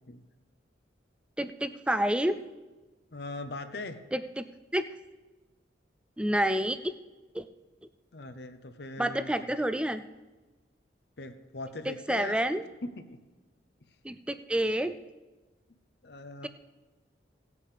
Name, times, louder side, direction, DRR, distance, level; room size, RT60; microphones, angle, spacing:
voice 1, 1.4-2.4 4.1-4.4 4.7-4.8 6.2-6.9 7.3-7.4 9.0-10.0 11.9-12.6 14.0-14.9, right 1 dB, 5° right, 11 dB, 0.3 m, -28 dB
voice 2, 3.1-4.0 8.1-9.5 11.2-12.4 12.8-13.2 13.9-14.0 16.0-16.5, left 2 dB, 60° left, 9 dB, 0.7 m, -40 dB
18.0 x 8.4 x 3.4 m, 1.2 s
head